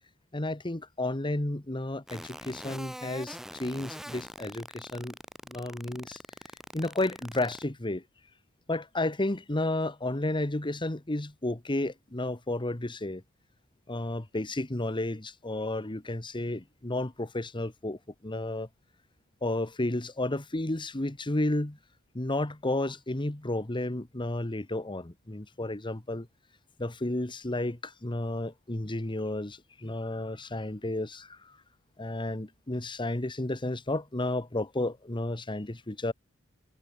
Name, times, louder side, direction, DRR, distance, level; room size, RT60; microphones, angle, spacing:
voice 1, 0.3-5.2 5.5-6.2 6.7-8.0 8.7-13.2 13.9-18.7 19.4-21.8 22.1-26.3 26.8-31.6 32.0-36.1, left 2 dB, 25° left, 1.3 m, -32 dB
sound 1, 2.1-7.7, equal, ahead, 2.5 m, -42 dB
head